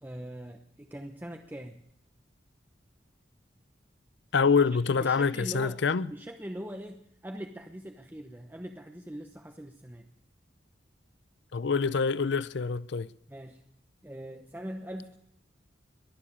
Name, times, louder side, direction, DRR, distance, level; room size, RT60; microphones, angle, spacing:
voice 1, 0.0-1.8 4.9-5.8 6.1-10.1 13.3-13.6 14.0-15.2, equal, 10° right, 0.9 m, -42 dB
voice 2, 4.3-6.1 11.5-13.1, left 5 dB, 65° left, 0.5 m, -26 dB
22.0 x 7.5 x 8.7 m
head